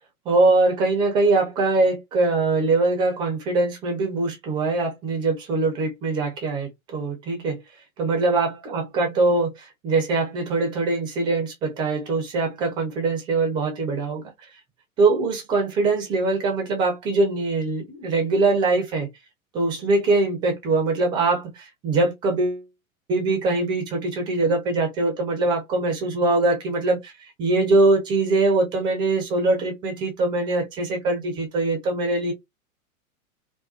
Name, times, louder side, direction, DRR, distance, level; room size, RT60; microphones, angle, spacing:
voice 1, 0.3-7.6 8.0-14.2 15.0-19.1 19.5-22.6 23.1-27.1 27.4-32.3, right 3 dB, 10° right, 0.4 m, -22 dB
2.4 x 2.2 x 2.3 m
figure-of-eight pair, 100°, 42 cm